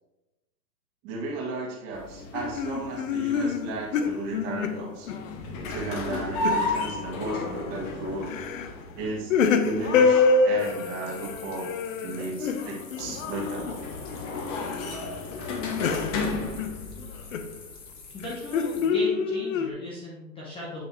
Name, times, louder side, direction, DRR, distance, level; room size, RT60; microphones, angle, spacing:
voice 1, 1.0-5.1 5.7-8.3 9.0-11.7 12.0-13.9, right 3 dB, 35° right, -3 dB, 2.2 m, -35 dB
sound 1, 1.9-19.0, left 2 dB, 30° left, 1.1 m, -35 dB
sound 2, 2.3-5.3 5.7-6.8 7.3-7.6 8.2-8.7 9.0-14.1 14.5-15.0 15.3-17.5 18.2-19.7, left 5 dB, 50° left, 0.7 m, -26 dB
sound 3, 10.6-18.9, left 4 dB, 80° left, 2.2 m, -47 dB
voice 2, 18.1-20.8, left 1 dB, 10° left, -5 dB, 0.9 m, -37 dB
8.1 x 6.4 x 3.0 m, 0.99 s
hypercardioid pair, 140°, 50 cm